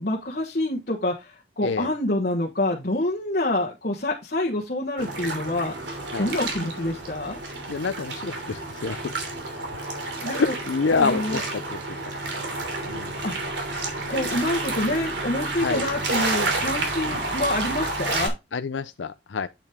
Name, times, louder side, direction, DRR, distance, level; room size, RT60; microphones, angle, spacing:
voice 1, 0.0-5.7 6.2-7.4 10.2-10.5 10.9-11.4 13.2-13.6 14.1-18.3, left 1 dB, 50° left, 1.3 m, -27 dB
sound 1, 5.0-18.3, right 2 dB, 70° right, 2.9 m, -30 dB
voice 2, 7.7-9.1 10.3-11.8 12.8-13.1 15.6-15.8 18.5-19.5, left 4 dB, 85° left, 0.5 m, -27 dB
8.6 x 5.7 x 3.6 m
head